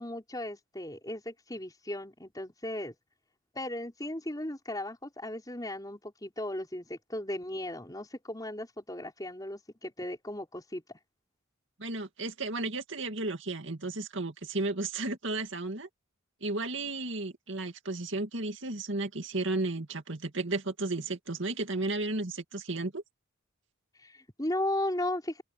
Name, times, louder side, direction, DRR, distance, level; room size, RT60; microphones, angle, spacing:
voice 1, 0.0-2.9 3.6-10.8 24.0-25.4, left 1 dB, 20° left, 5.2 m, -36 dB
voice 2, 11.8-15.9 16.4-23.0, right 2 dB, 65° right, 2.4 m, -33 dB
open air
head